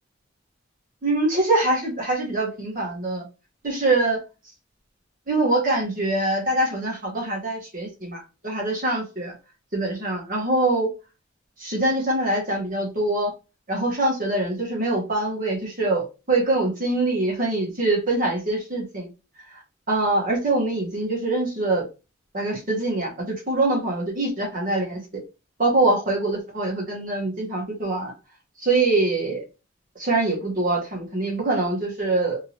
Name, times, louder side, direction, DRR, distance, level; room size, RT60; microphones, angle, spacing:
voice 1, 1.0-3.2 3.6-4.2 5.3-9.3 9.7-10.9 11.6-13.3 13.7-19.1 19.5-19.6 19.9-21.8 22.3-23.1 23.5-25.0 25.6-28.1 28.6-29.4 29.9-32.4, right 2 dB, 45° right, 0 dB, 1.3 m, -24 dB
3.5 x 2.9 x 2.9 m, 0.30 s
head